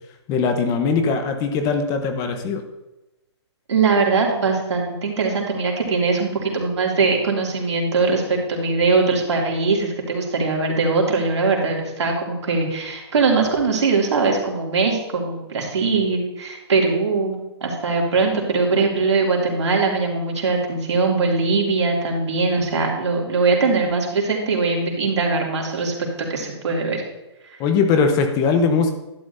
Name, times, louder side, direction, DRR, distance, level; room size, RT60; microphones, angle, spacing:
voice 1, 0.3-2.6 27.6-28.9, left 5 dB, 25° left, 6 dB, 0.9 m, -20 dB
voice 2, 3.7-27.0, right 4 dB, 80° right, -1 dB, 2.6 m, -21 dB
11.5 x 9.5 x 2.7 m, 1.0 s
hypercardioid pair, 145°, 15 cm